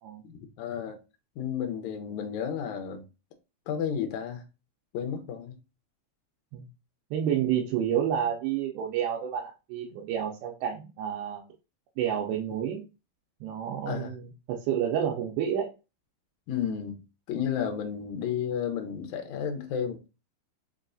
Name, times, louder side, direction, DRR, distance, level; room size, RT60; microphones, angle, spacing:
voice 1, 0.2-1.0 1.4-3.0 3.7-4.4 4.9-5.5 13.9-14.1 16.5-20.1, left 8 dB, 85° left, 1.6 m, -32 dB
voice 2, 7.1-11.4 12.0-12.8 13.4-15.7, right 9 dB, 90° right, 2.6 m, -29 dB
6.0 x 2.3 x 2.5 m
omnidirectional pair, 4.3 m